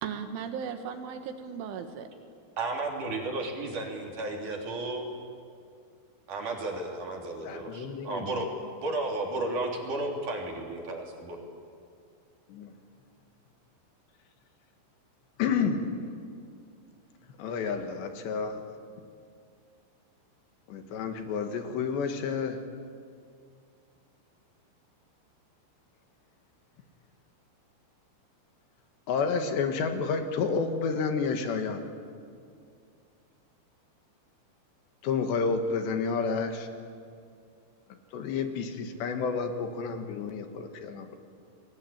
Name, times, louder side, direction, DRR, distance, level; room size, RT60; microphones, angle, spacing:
voice 1, 0.0-2.1, right 7 dB, 80° right, 7 dB, 4.1 m, -36 dB
voice 2, 2.6-5.0 6.3-8.5 8.8-11.4, right 2 dB, 45° right, 1 dB, 4.4 m, -33 dB
voice 3, 7.4-8.3 12.5-12.7 15.4-16.0 17.4-18.6 20.7-22.6 29.1-31.8 35.0-36.7 38.1-41.2, left 5 dB, 70° left, 6 dB, 3.7 m, -30 dB
29.0 x 21.5 x 8.8 m, 2.3 s
omnidirectional pair, 5.5 m